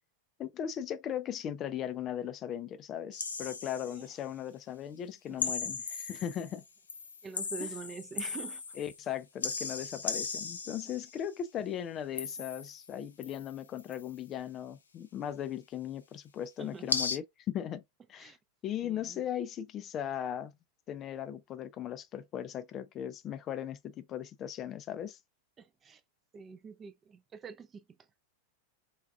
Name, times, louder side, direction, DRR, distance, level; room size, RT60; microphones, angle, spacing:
voice 1, 0.4-6.6 7.6-7.7 8.8-17.8 18.1-18.4 18.6-20.5 20.9-25.2, left 10 dB, 30° left, 0.4 m, -38 dB
sound 1, 3.1-4.1 5.4-6.6 6.9-9.0 9.4-11.2 12.2-12.9 13.2-14.1 16.9-17.2, left 5 dB, 70° left, 0.6 m, -37 dB
voice 2, 7.2-8.6 10.7-11.0 16.6-16.9 18.2-18.4 18.8-19.2 25.6-26.0 26.3-27.8, right 5 dB, 20° right, 0.5 m, -45 dB
4.2 x 3.4 x 2.4 m
figure-of-eight pair, 90°, 0 cm